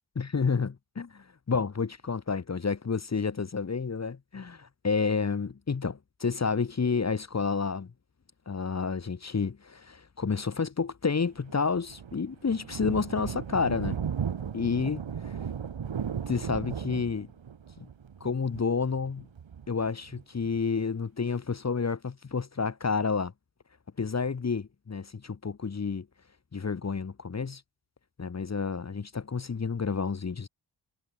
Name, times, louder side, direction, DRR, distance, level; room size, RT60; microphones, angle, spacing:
voice 1, 0.1-7.9 8.5-14.0 14.5-15.4 16.3-17.3 17.8-17.9 18.2-19.3 19.7-23.3 24.0-26.1 26.5-27.6 28.2-30.5, left 5 dB, 35° left, 1.5 m, -30 dB
Thunder, 11.4-20.6, right 7 dB, 75° right, 4.6 m, -36 dB
wide cardioid pair, 160°, 46 cm